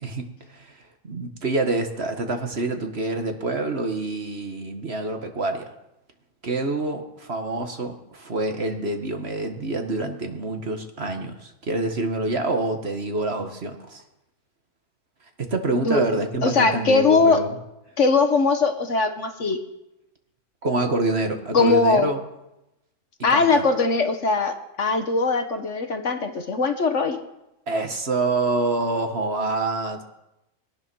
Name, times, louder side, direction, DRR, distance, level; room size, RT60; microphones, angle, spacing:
voice 1, 0.0-5.7 6.4-14.0 15.4-17.6 20.6-22.2 23.3-23.6 27.7-30.0, right 2 dB, 45° right, 5 dB, 1.7 m, -26 dB
voice 2, 16.4-17.4 18.0-19.6 21.5-22.1 23.2-27.2, left 4 dB, 55° left, 7 dB, 1.4 m, -20 dB
21.5 x 10.5 x 6.2 m, 0.91 s
omnidirectional pair, 1.6 m